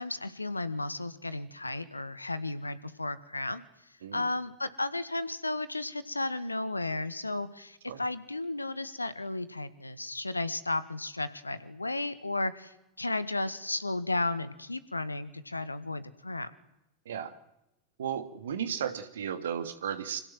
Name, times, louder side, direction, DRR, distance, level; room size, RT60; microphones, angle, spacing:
voice 1, 0.0-3.6 4.1-16.5, left 2 dB, 85° left, 14 dB, 1.9 m, -34 dB
voice 2, 18.0-20.2, right 8 dB, 65° right, 9 dB, 2.6 m, -34 dB
28.0 x 26.5 x 7.7 m, 0.87 s
figure-of-eight pair, 90°, 0 cm